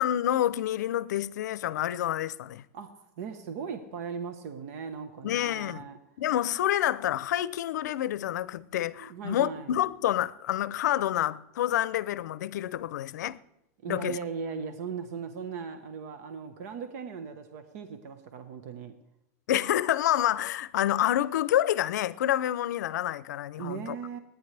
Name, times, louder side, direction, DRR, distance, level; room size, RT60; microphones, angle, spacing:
voice 1, 0.0-2.6 5.2-5.9 6.2-13.4 13.9-14.2 19.5-24.0, left 12 dB, 85° left, 0.5 m, -28 dB
voice 2, 3.2-6.0 9.0-9.7 13.8-18.9 23.6-24.2, right 6 dB, 65° right, 1.2 m, -38 dB
29.0 x 9.9 x 3.4 m
supercardioid pair, 130°, 9 cm